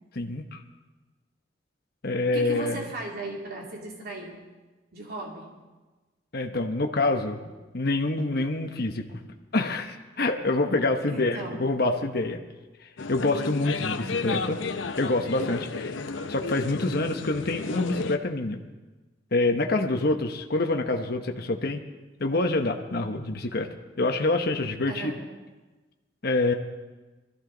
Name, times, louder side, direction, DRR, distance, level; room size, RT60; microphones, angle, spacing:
voice 1, 0.1-0.6 2.0-2.8 6.3-9.2 9.5-12.4 13.1-14.6 15.0-16.0 16.3-18.6 19.3-21.8 22.2-23.7 24.0-25.1 26.2-26.5, left 2 dB, 55° left, 4 dB, 1.0 m, -26 dB
voice 2, 2.3-4.4 4.9-5.5 11.1-11.6 24.9-25.2, right 2 dB, 55° right, -2 dB, 2.8 m, -36 dB
sound 1, 13.0-18.2, left 4 dB, 90° left, 0.8 m, -33 dB
21.5 x 14.5 x 3.9 m, 1.2 s
head